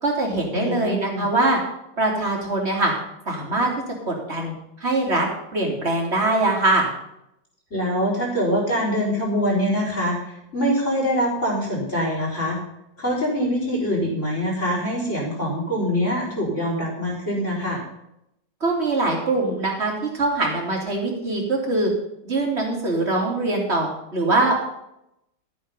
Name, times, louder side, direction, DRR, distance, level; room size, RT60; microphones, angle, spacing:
voice 1, 0.0-1.6 2.0-2.9 3.3-3.7 4.1-4.5 4.8-5.3 5.5-6.9 18.6-21.9 22.3-24.7, right 2 dB, 35° right, -1 dB, 3.5 m, -22 dB
voice 2, 0.5-1.3 7.7-12.6 13.0-17.8, equal, 40° left, -2 dB, 4.8 m, -24 dB
13.5 x 8.7 x 5.5 m, 0.81 s
omnidirectional pair, 1.9 m